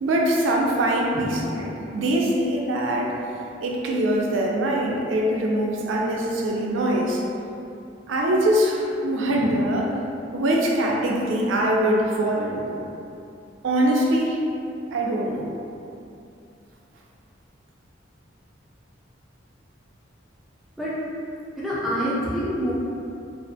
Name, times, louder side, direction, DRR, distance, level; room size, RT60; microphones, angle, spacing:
voice 1, 0.0-3.1 3.6-7.2 8.1-9.9 10.3-12.8 13.6-14.4 14.9-15.5, right 1 dB, 80° right, -1 dB, 0.4 m, -23 dB
voice 2, 21.6-22.7, equal, ahead, -10 dB, 0.5 m, -26 dB
2.4 x 2.1 x 2.6 m, 2.6 s
head